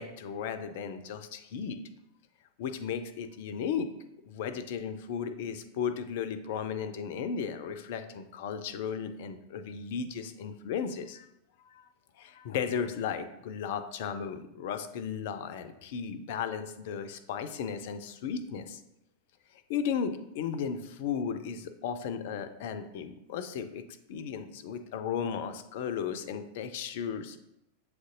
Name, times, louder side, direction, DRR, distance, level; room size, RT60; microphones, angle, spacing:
voice 1, 0.0-1.8 2.6-3.9 4.2-11.3 11.7-11.9 12.2-18.8 19.7-27.4, left 7 dB, 50° left, 10 dB, 0.3 m, -35 dB
7.5 x 2.5 x 2.5 m, 0.83 s
figure-of-eight pair, 90°, 0 cm